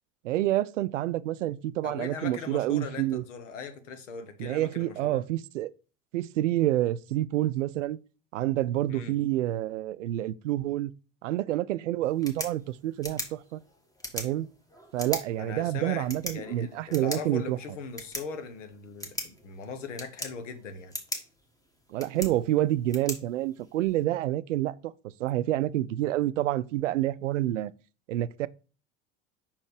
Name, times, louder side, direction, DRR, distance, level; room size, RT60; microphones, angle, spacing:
voice 1, 0.2-3.2 4.4-5.7 6.1-8.0 8.3-10.9 11.2-13.6 14.1-14.5 14.9-17.6 21.9-24.9 25.2-27.7 28.1-28.5, right 14 dB, 80° right, 0.5 m, -28 dB
voice 2, 1.8-5.2 8.9-9.2 15.4-20.9, left 5 dB, 75° left, 1.2 m, -40 dB
sound 1, 12.0-24.0, equal, 10° left, 1.7 m, -41 dB
5.6 x 4.5 x 4.7 m
hypercardioid pair, 80°, 37 cm